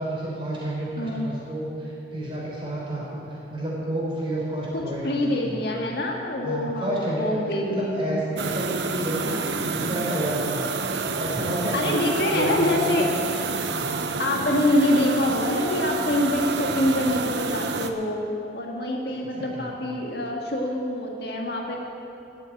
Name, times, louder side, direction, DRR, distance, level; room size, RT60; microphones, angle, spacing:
voice 1, 0.0-5.6 6.4-7.4 7.7-10.7 11.1-12.0 12.3-13.1 13.6-14.1 19.1-19.7, right 1 dB, 30° right, -5 dB, 3.9 m, -30 dB
voice 2, 1.0-1.3 4.7-8.2 9.2-10.0 11.7-13.1 13.4-13.5 14.2-18.2 18.5-21.8, left 1 dB, 65° left, 0 dB, 1.7 m, -25 dB
sound 1, 8.4-17.9, right 4 dB, 80° right, 0.8 m, -29 dB
13.0 x 7.5 x 8.7 m, 2.7 s
head